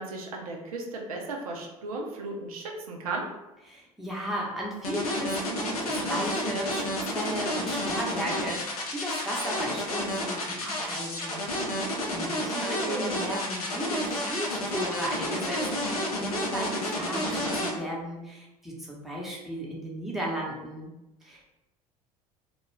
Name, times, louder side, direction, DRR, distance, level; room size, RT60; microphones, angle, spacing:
voice 1, 0.0-3.3 12.4-13.1, right 3 dB, 80° right, 0 dB, 0.5 m, -36 dB
voice 2, 3.6-11.4 11.8-20.9 21.2-21.4, equal, ahead, -4 dB, 0.8 m, -35 dB
sound 1, 4.8-17.7, left 1 dB, 85° left, 0.6 m, -30 dB
2.3 x 2.2 x 3.2 m, 0.97 s
hypercardioid pair, 65°, 18 cm